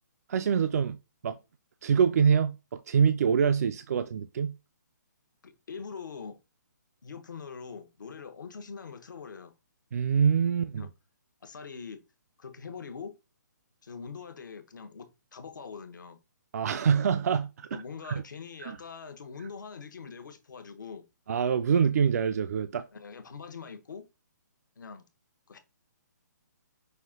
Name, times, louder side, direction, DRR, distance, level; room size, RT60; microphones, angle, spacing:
voice 1, 0.3-1.0 1.2-1.4 1.8-4.6 9.9-10.8 16.5-18.2 18.6-18.8 21.3-22.8, right 7 dB, 55° right, 0.4 m, -25 dB
voice 2, 5.4-6.4 7.0-9.5 10.8-10.9 11.4-12.0 12.4-13.1 13.8-16.2 17.7-21.0 22.9-24.1 24.8-25.0 25.5-25.6, left 5 dB, 80° left, 0.9 m, -43 dB
5.7 x 2.5 x 3.7 m
hypercardioid pair, 160°, 10 cm